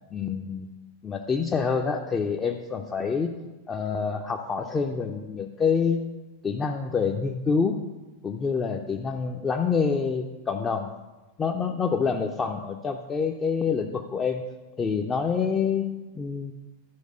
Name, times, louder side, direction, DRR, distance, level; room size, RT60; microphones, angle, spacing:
voice 1, 0.1-0.7 1.0-3.4 3.7-6.0 6.4-7.8 8.2-10.9 11.4-14.4 14.8-15.9 16.1-16.5, left 5 dB, 20° left, 2 dB, 0.6 m, -27 dB
11.5 x 4.8 x 6.4 m, 1.1 s
figure-of-eight pair, 90°, 0 cm